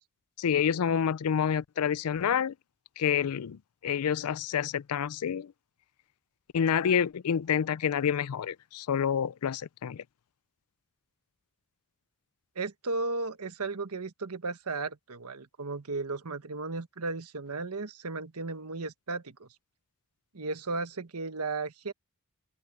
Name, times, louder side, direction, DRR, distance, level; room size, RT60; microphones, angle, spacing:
voice 1, 0.4-2.5 3.0-5.5 6.5-10.0, left 8 dB, 85° left, 0.4 m, -28 dB
voice 2, 12.5-19.5 20.3-21.9, right 3 dB, 85° right, 1.3 m, -35 dB
head